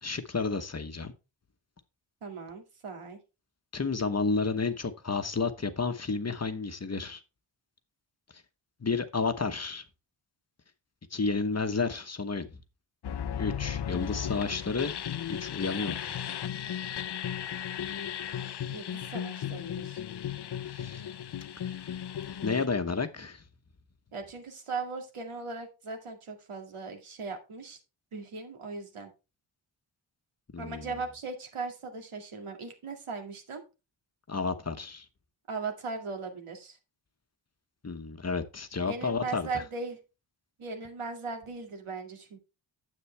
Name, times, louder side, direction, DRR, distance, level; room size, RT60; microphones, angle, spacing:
voice 1, 0.0-1.1 3.7-7.2 8.8-9.8 11.1-12.6 13.4-14.9 15.3-16.2 20.6-21.1 21.6-22.0 22.3-23.4 30.5-30.9 34.3-35.1 37.8-39.6, left 4 dB, 30° left, 1.0 m, -31 dB
voice 2, 2.2-3.2 18.7-20.0 24.1-27.8 28.1-29.1 30.6-33.6 35.5-36.8 38.8-40.0 40.6-42.4, right 4 dB, 90° right, 2.3 m, -38 dB
sound 1, 13.0-22.7, left 9 dB, 55° left, 0.6 m, -35 dB
9.8 x 7.8 x 3.3 m
wide cardioid pair, 105°, 49 cm